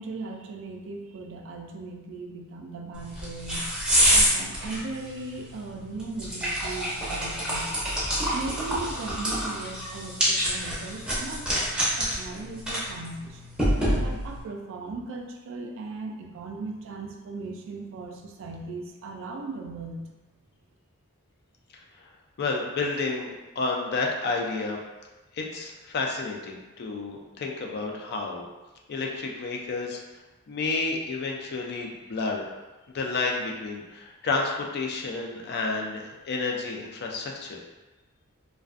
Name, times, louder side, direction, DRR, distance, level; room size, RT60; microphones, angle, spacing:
voice 1, 0.0-3.7 4.1-7.7 8.3-13.4 14.0-20.1, right 3 dB, 65° right, 3 dB, 0.3 m, -38 dB
sound 1, 2.9-14.4, equal, 5° right, 0.6 m, -27 dB
voice 2, 22.4-24.8 25.3-28.5 28.9-30.0 30.5-32.5 32.9-37.6, left 3 dB, 50° left, 0 dB, 0.3 m, -30 dB
2.4 x 2.2 x 2.4 m, 1.1 s
head